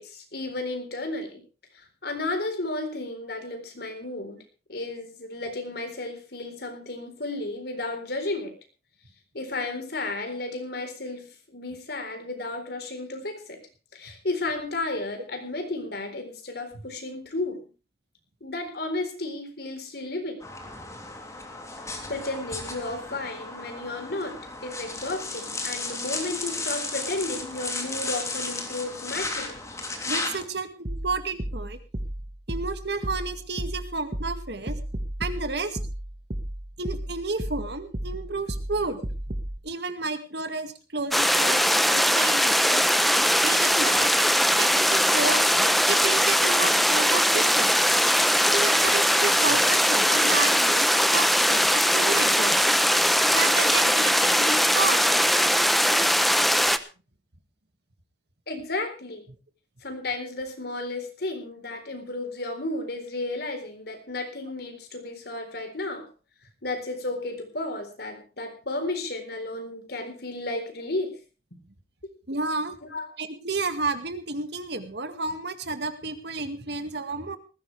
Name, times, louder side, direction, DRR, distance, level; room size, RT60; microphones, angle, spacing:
voice 1, 0.0-1.4 1.7-4.4 4.7-8.6 9.3-17.7 18.4-20.5 22.1-29.6 58.5-59.3 59.8-66.1 66.6-71.2 72.9-73.1, left 2 dB, 65° left, 6 dB, 4.1 m, -33 dB
sound 1, 20.4-30.4, left 3 dB, 20° left, 3.2 m, -34 dB
voice 2, 30.1-31.8 32.5-34.8 35.2-35.8 36.8-39.0 39.6-42.8 43.4-44.1 44.6-47.7 48.5-52.8 53.3-55.1 72.3-72.8 73.2-77.4, right 3 dB, 65° right, 9 dB, 2.1 m, -31 dB
sound 2, 30.9-39.6, right 1 dB, 40° right, 1.5 m, -33 dB
sound 3, 41.1-56.8, equal, ahead, 0.8 m, -21 dB
19.5 x 15.5 x 3.4 m, 0.33 s
head